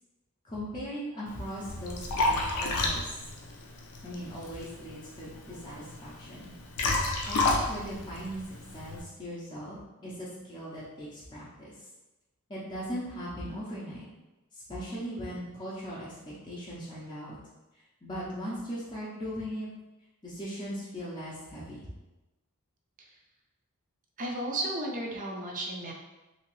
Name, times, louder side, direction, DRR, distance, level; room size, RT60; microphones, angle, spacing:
voice 1, 0.4-3.3 4.0-6.5 7.2-11.9 12.5-14.0 14.5-17.4 17.7-19.7 20.2-21.9, equal, 20° left, -8 dB, 0.6 m, -39 dB
Liquid, 1.3-9.0, left 2 dB, 75° left, 0.5 m, -31 dB
voice 2, 24.2-25.9, right 1 dB, 35° right, 0 dB, 0.5 m, -34 dB
3.0 x 2.8 x 3.0 m, 1.1 s
head